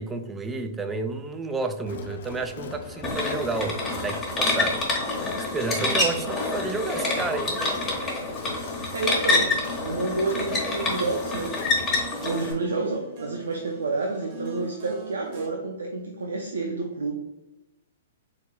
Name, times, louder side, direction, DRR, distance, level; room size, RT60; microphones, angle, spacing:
voice 1, 0.0-3.8 4.0-4.8 5.1-7.6, right 3 dB, 15° right, 8 dB, 0.4 m, -31 dB
Crowd, 1.9-12.1, left 4 dB, 65° left, 0.6 m, -39 dB
sound 1, 3.0-12.5, left 2 dB, 15° left, 1.3 m, -27 dB
voice 2, 8.9-9.5 9.8-11.5 12.2-17.2, right 3 dB, 85° right, 1 dB, 0.5 m, -29 dB
sound 2, 9.6-15.5, right 3 dB, 50° right, 1.3 m, -43 dB
4.4 x 3.8 x 2.3 m, 1.0 s
hypercardioid pair, 125°, 0 cm